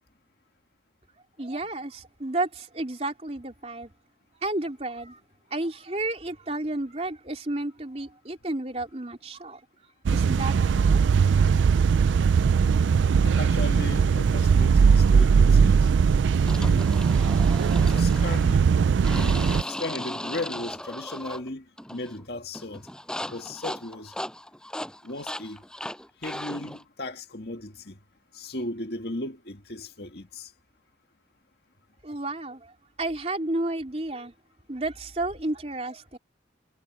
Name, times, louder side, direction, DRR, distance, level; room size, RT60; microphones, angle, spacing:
voice 1, 1.4-3.9 4.4-5.2 5.5-9.6 10.1-11.0 11.3-11.4 32.0-32.7 33.0-34.3 34.7-36.2, right 2 dB, 35° right, 3.4 m, -32 dB
sound 1, 10.1-19.6, right 6 dB, 80° right, 0.4 m, -20 dB
voice 2, 13.2-15.9 16.6-16.9 17.9-18.6 19.1-21.6 21.9-22.8 23.2-24.1 25.0-25.6 26.2-28.0 28.3-30.5, left 2 dB, 55° left, 2.0 m, -36 dB
sound 2, 16.5-18.5 19.0-21.5 21.8-22.2 22.5-26.8, left 1 dB, 5° left, 6.1 m, -37 dB
head